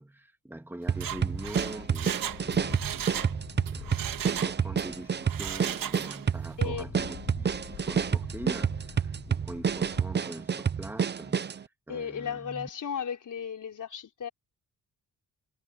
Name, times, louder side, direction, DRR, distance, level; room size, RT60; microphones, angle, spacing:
voice 1, 0.0-3.1 3.7-12.7, right 1 dB, 5° right, 2.1 m, -43 dB
sound 1, 0.9-11.6, right 7 dB, 30° right, 0.7 m, -29 dB
Mechanisms, 0.9-3.4 3.7-4.9 5.2-6.3 6.6-6.7, right 10 dB, 70° right, 2.3 m, -36 dB
sound 2, 1.1-10.0, left 10 dB, 85° left, 6.7 m, -47 dB
voice 2, 11.9-14.3, left 7 dB, 60° left, 4.7 m, -35 dB
cardioid pair, 105°, 35 cm